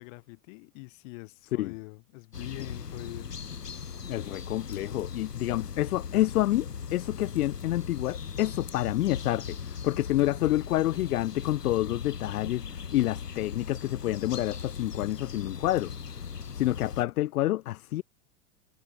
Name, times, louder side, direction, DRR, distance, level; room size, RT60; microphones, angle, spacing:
voice 1, 0.0-3.4, left 30 dB, 50° left, 4.8 m, -43 dB
sound 1, 2.3-17.0, left 6 dB, 85° left, 2.4 m, -39 dB
voice 2, 4.1-15.9 16.5-18.0, left 15 dB, 70° left, 0.7 m, -28 dB
figure-of-eight pair, 90°, 46 cm